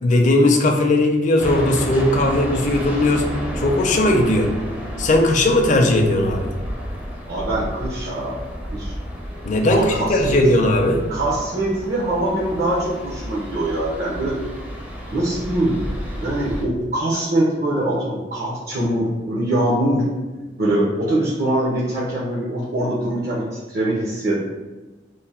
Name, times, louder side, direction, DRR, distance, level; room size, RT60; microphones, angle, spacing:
voice 1, 0.0-3.3 3.6-4.5 5.0-6.5 9.4-11.0, left 1 dB, 45° left, 2 dB, 0.5 m, -18 dB
sound 1, 1.4-16.6, equal, 10° right, 0.5 m, -31 dB
voice 2, 7.3-8.4 8.7-8.9 9.7-10.4 11.1-14.4 15.1-15.8 16.2-20.0 20.6-24.4, right 1 dB, 60° right, -6 dB, 0.7 m, -23 dB
3.3 x 2.1 x 4.2 m, 1.2 s
head